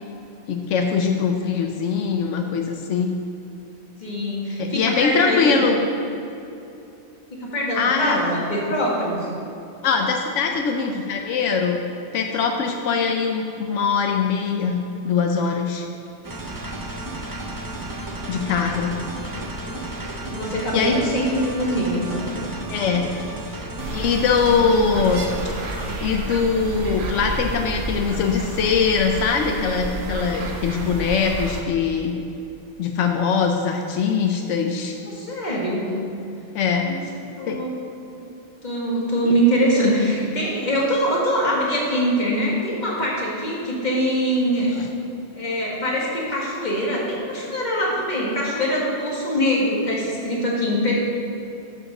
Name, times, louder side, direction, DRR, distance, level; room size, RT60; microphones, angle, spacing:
voice 1, 0.5-3.1 4.6-5.8 7.7-8.2 9.8-11.8 12.1-14.8 15.0-15.9 18.3-18.9 20.7-21.0 22.4-23.2 23.9-25.3 26.0-32.2 32.8-34.9 36.5-36.9 37.5-37.6 39.3-39.4 44.8-44.9, left 5 dB, 85° left, 3 dB, 1.0 m, -22 dB
voice 2, 4.0-5.7 7.3-9.3 20.3-22.2 35.0-36.0 36.8-37.0 37.4-37.8 38.1-38.2 38.6-44.7 45.3-51.0, equal, 35° left, -4 dB, 1.9 m, -23 dB
sound 1, 16.2-26.1, right 2 dB, 20° right, 0.7 m, -33 dB
sound 2, 23.8-31.6, right 2 dB, 75° right, 1.3 m, -31 dB
8.6 x 5.3 x 6.4 m, 2.8 s
omnidirectional pair, 1.2 m